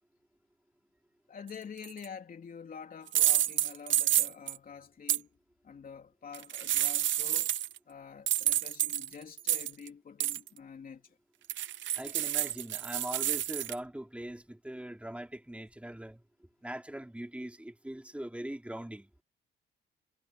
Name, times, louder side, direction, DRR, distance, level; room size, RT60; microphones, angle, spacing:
voice 1, 1.3-5.3 5.6-7.5 7.9-11.2, left 6 dB, 45° left, 3.7 m, -47 dB
sound 1, 1.8-2.1 3.1-4.6 5.1-5.2 6.3-7.8 8.3-9.9 10.2-10.5 11.5-13.7, right 13 dB, 70° right, 0.9 m, -29 dB
voice 2, 12.0-16.2 16.6-19.1, right 1 dB, 5° right, 3.6 m, -41 dB
cardioid pair, 90°, 20 cm